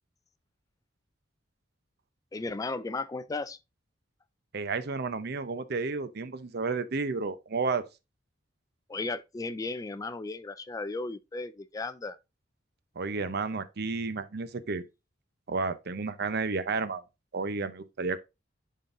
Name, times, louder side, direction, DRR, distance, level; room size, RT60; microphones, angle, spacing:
voice 1, 2.3-3.6 8.9-12.2, left 3 dB, 20° left, 0.3 m, -35 dB
voice 2, 4.5-7.8 13.0-14.8 15.5-17.0 17.3-18.2, right 4 dB, 55° right, 0.6 m, -31 dB
10.5 x 3.8 x 2.5 m
head